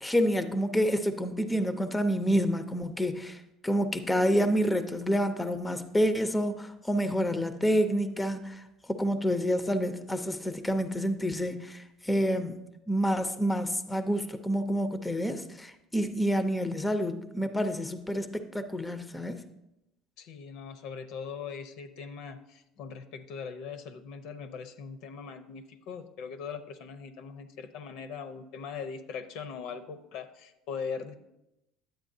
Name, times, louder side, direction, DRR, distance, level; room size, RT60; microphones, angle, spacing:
voice 1, 0.0-12.6 12.9-19.4, equal, 10° left, 9 dB, 0.5 m, -28 dB
voice 2, 20.2-31.1, left 6 dB, 70° left, 9 dB, 0.7 m, -40 dB
10.0 x 8.0 x 2.7 m, 0.88 s
cardioid pair, 130°, 0 cm